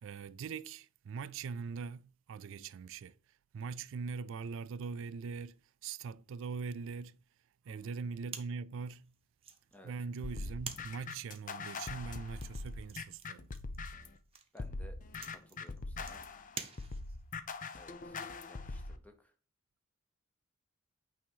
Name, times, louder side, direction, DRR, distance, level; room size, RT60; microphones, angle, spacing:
voice 1, 0.0-3.2 3.5-5.6 5.8-7.2 7.6-9.1 9.8-13.5, right 5 dB, 65° right, 0.4 m, -42 dB
sound 1, 8.3-17.3, right 6 dB, 30° right, 0.9 m, -50 dB
sound 2, 10.2-14.2 14.6-19.0, left 3 dB, 40° left, 0.6 m, -42 dB
voice 2, 14.5-15.0 15.3-16.2 17.7-18.2 18.5-19.3, left 1 dB, 5° left, 0.8 m, -58 dB
8.6 x 2.9 x 5.4 m
head